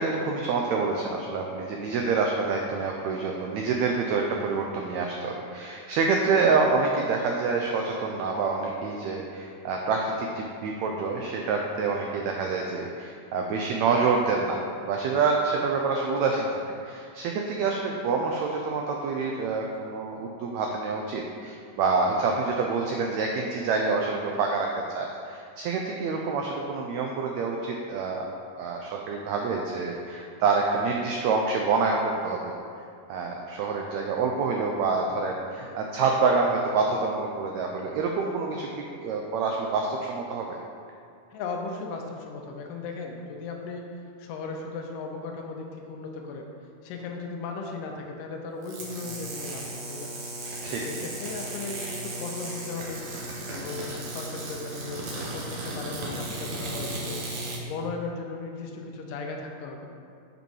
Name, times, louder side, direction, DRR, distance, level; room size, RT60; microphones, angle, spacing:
voice 1, 0.0-24.7 24.9-28.3 28.6-32.5 33.1-38.7 39.0-40.6 50.6-50.8, right 4 dB, 90° right, 1 dB, 1.5 m, -27 dB
voice 2, 41.3-43.8 44.2-46.5 46.8-50.1 50.7-53.0 53.5-59.9, left 4 dB, 85° left, 2 dB, 2.4 m, -37 dB
sound 1, 48.6-57.6, right 1 dB, 65° right, 2.1 m, -35 dB
7.4 x 5.2 x 4.7 m, 2.4 s
omnidirectional pair, 3.8 m